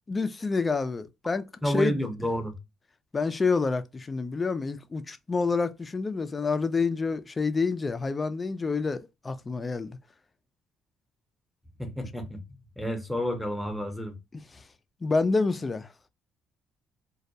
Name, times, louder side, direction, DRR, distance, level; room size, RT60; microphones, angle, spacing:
voice 1, 0.1-2.0 3.1-10.0 14.3-14.4 15.0-15.9, left 4 dB, 25° left, 0.4 m, -28 dB
voice 2, 1.6-2.6 11.8-12.4 12.8-14.2, equal, ahead, 0.8 m, -30 dB
2.2 x 2.1 x 2.7 m
cardioid pair, 90°, 0 cm